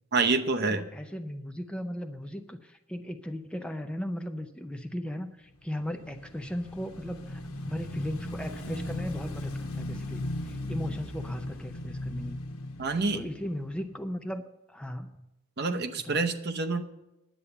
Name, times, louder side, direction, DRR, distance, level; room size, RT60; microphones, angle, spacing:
voice 1, 0.1-0.8 12.8-13.2 15.6-16.8, right 3 dB, 50° right, 7 dB, 0.8 m, -27 dB
voice 2, 0.7-7.4 7.7-12.4 13.1-14.4 14.7-15.2 16.0-16.2, equal, 5° left, 6 dB, 0.5 m, -37 dB
Motorcycle / Engine, 5.6-14.1, left 1 dB, 85° left, 1.3 m, -37 dB
10.5 x 8.5 x 6.8 m, 0.94 s
head